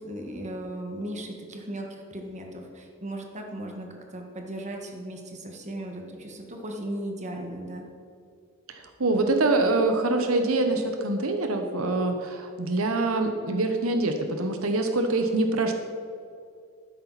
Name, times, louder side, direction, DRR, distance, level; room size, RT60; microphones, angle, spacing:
voice 1, 0.0-7.8, right 1 dB, 35° right, 2 dB, 1.5 m, -37 dB
voice 2, 8.7-15.7, right 2 dB, 85° right, 5 dB, 1.0 m, -25 dB
12.0 x 10.5 x 4.1 m, 2.4 s
head